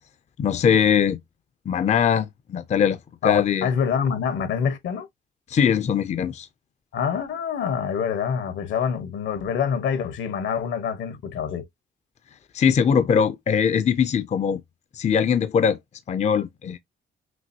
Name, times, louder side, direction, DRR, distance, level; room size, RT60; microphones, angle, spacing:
voice 1, 0.4-1.2 1.7-3.7 5.5-6.5 12.5-14.6 14.9-15.8 16.1-16.8, left 7 dB, 35° left, 0.5 m, -21 dB
voice 2, 3.2-5.1 6.9-11.7, left 7 dB, 75° left, 1.2 m, -26 dB
6.1 x 2.5 x 2.8 m
cardioid pair, 90°, 20 cm